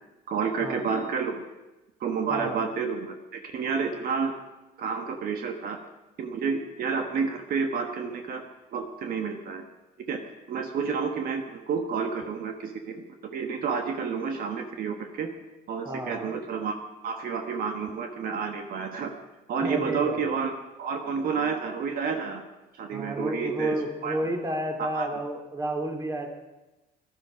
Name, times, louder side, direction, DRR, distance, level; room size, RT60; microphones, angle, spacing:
voice 1, 0.3-1.4 2.0-4.3 4.8-5.8 6.2-8.4 8.7-9.6 10.1-10.2 10.5-15.3 15.7-16.8 17.0-19.1 19.5-22.4 22.8-23.7 24.0-24.2 24.8-25.1, right 5 dB, 60° right, 4 dB, 1.4 m, -30 dB
voice 2, 15.8-16.3 19.6-20.3 22.9-26.3, right 1 dB, 20° right, 3 dB, 2.4 m, -31 dB
16.0 x 12.0 x 5.0 m, 1.0 s
cardioid pair, 110°, 17 cm